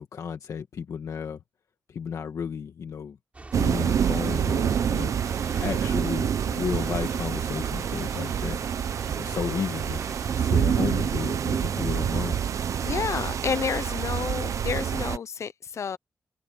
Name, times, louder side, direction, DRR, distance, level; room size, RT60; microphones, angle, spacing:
voice 1, 0.0-1.4 1.9-3.2 3.6-5.1 5.6-8.6 9.1-10.1 10.4-12.4, left 7 dB, 80° left, 1.7 m, -33 dB
sound 1, 3.3-12.1, right 3 dB, 25° right, 3.9 m, -43 dB
sound 2, 3.5-15.2, right 8 dB, 75° right, 0.8 m, -27 dB
voice 2, 12.8-16.0, left 6 dB, 65° left, 0.7 m, -30 dB
open air
wide cardioid pair, 145°, 5 cm